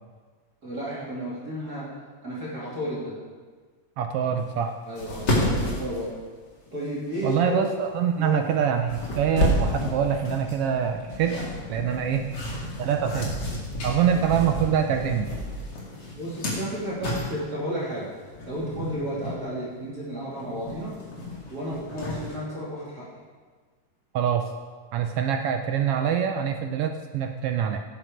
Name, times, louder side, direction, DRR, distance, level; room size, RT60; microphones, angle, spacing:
voice 1, 0.6-1.9 2.2-3.1 4.9-6.1 6.7-7.6 8.2-8.4 16.1-18.1 18.5-20.9 21.5-23.1, right 1 dB, 30° right, -8 dB, 3.6 m, -32 dB
voice 2, 4.0-4.7 7.2-11.4 11.7-12.3 12.8-13.3 13.8-15.3 24.1-24.4 24.9-27.8, right 8 dB, 80° right, 6 dB, 1.3 m, -25 dB
sound 1, 4.6-4.7 5.0-6.7 7.1-7.4 8.4-8.5 8.9-17.6 18.3-19.4 19.8-19.9 20.2-22.4, left 1 dB, 35° left, 2.6 m, -31 dB
17.0 x 7.8 x 5.1 m, 1.5 s
omnidirectional pair, 3.4 m